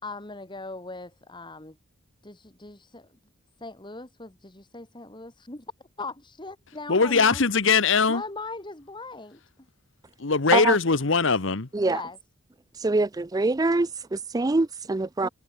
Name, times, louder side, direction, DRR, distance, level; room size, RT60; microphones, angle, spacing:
voice 1, 0.0-1.8 2.2-3.1 3.6-5.6 6.0-7.4 8.1-9.4 11.8-12.2 15.2-15.3, left 3 dB, 25° left, 2.2 m, -39 dB
voice 2, 6.9-8.2 10.2-11.7, left 4 dB, 65° left, 1.1 m, -21 dB
voice 3, 12.8-15.3, right 3 dB, 20° right, 0.4 m, -24 dB
head